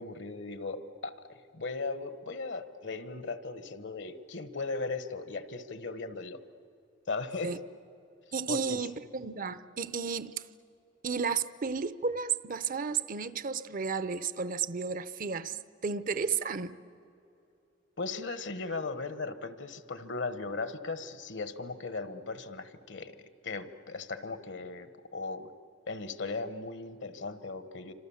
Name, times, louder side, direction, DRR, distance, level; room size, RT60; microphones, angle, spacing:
voice 1, 0.0-6.4 7.1-7.5 8.5-8.8 18.0-23.2 23.4-25.5 25.9-27.9, left 3 dB, 65° left, 1.2 m, -37 dB
voice 2, 8.3-10.4 11.0-16.8, right 5 dB, 45° right, 0.7 m, -33 dB
28.5 x 26.0 x 7.2 m
head